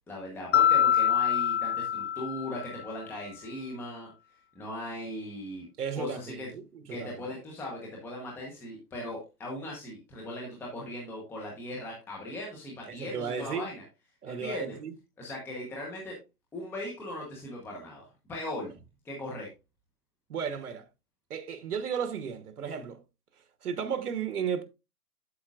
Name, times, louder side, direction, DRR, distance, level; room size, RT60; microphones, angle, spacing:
voice 1, 0.1-4.1 4.5-5.7 5.9-6.5 6.9-13.8 14.2-14.8 15.2-16.1 16.5-18.7 19.0-19.5, left 1 dB, 5° left, 1.0 m, -39 dB
Mallet percussion, 0.5-2.9, left 10 dB, 50° left, 0.5 m, -25 dB
voice 2, 5.8-7.3 12.9-13.7 14.2-14.9 20.3-20.9 21.3-23.0 23.6-24.6, right 7 dB, 75° right, 1.2 m, -34 dB
8.4 x 7.5 x 2.4 m
hypercardioid pair, 155°, 46 cm